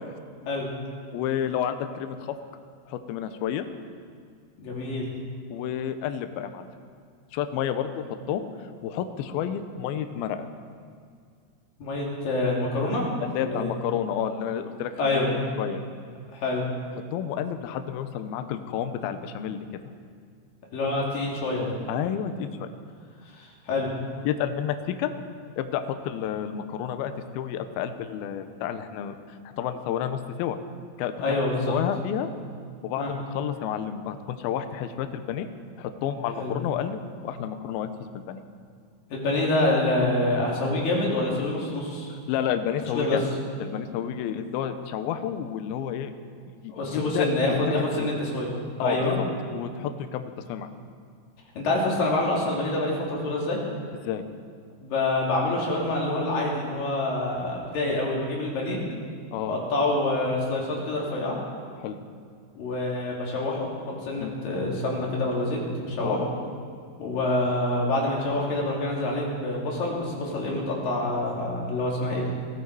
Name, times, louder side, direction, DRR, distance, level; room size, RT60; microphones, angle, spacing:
voice 1, 1.1-2.4 2.9-3.6 5.5-6.7 7.3-8.5 8.8-10.5 13.2-15.8 17.1-19.8 21.9-22.7 24.3-25.1 25.6-30.6 31.0-32.3 32.8-35.5 35.8-38.4 42.3-43.2 43.6-46.1 46.6-47.3 48.0-48.1 48.8-49.2 49.5-50.7 54.0-54.2 59.3-59.5 61.8-62.0 64.2-64.3 66.0-66.2, left 9 dB, 75° left, 9 dB, 2.5 m, -30 dB
voice 2, 4.6-5.1 11.8-13.0 13.4-13.7 15.0-15.3 16.3-16.7 20.7-21.7 23.4-23.9 31.2-31.8 33.0-33.1 36.4-36.5 39.1-42.1 42.9-43.2 46.7-48.5 48.8-49.2 51.5-53.6 54.8-58.8 59.4-61.4 62.6-63.7 64.0-66.2 67.0-72.3, left 2 dB, 60° left, -3 dB, 4.3 m, -26 dB
18.5 x 14.0 x 4.8 m, 2.2 s
omnidirectional pair, 4.7 m